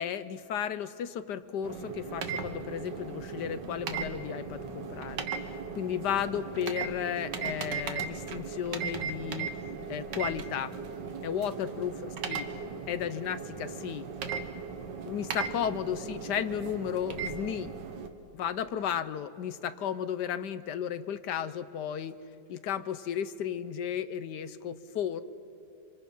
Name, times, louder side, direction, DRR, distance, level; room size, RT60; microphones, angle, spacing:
voice 1, 0.0-5.3 5.8-9.5 9.9-10.7 11.2-11.9 12.3-12.4 12.9-14.1 15.0-17.7 18.3-22.1 22.5-25.2, left 9 dB, 75° left, 13 dB, 1.3 m, -34 dB
sound 1, 1.6-18.1, right 5 dB, 75° right, 1.9 m, -37 dB
26.0 x 26.0 x 5.4 m, 2.7 s
omnidirectional pair, 1.9 m